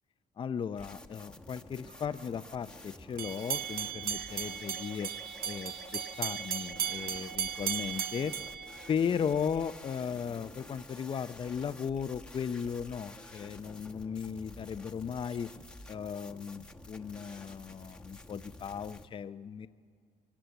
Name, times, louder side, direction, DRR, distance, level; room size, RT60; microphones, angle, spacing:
voice 1, 0.4-5.1 5.4-8.3 8.9-15.5 15.9-19.7, left 7 dB, 30° left, 12 dB, 0.5 m, -36 dB
sound 1, 0.8-19.1, left 2 dB, 5° left, 1.1 m, -50 dB
sound 2, 3.2-9.4, right 9 dB, 60° right, 0.7 m, -36 dB
22.5 x 17.5 x 8.1 m, 2.1 s
cardioid pair, 110°, 17 cm